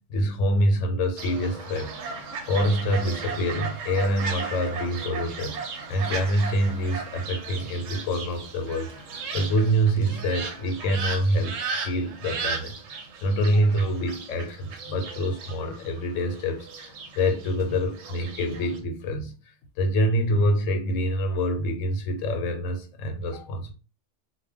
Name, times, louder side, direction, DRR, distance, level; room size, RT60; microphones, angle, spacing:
voice 1, 0.0-1.9 2.5-5.6 5.9-8.9 9.3-19.3 19.8-23.7, equal, 90° left, 1.0 m, -26 dB
Fowl, 1.2-18.8, right 5 dB, 85° right, 1.0 m, -36 dB
2.2 x 2.1 x 3.4 m
omnidirectional pair, 1.3 m